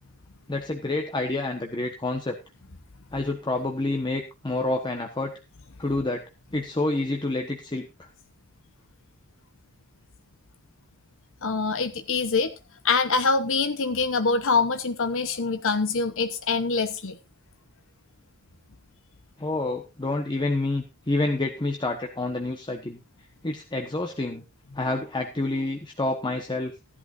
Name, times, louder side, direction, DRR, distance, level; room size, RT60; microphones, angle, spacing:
voice 1, 0.5-2.3 3.1-5.3 5.8-6.2 6.5-8.1 19.4-23.0 23.4-24.4 24.7-26.7, left 2 dB, 20° left, 1.2 m, -28 dB
voice 2, 11.4-12.5 12.8-17.2, left 4 dB, 60° left, 0.9 m, -24 dB
15.0 x 11.5 x 2.6 m
head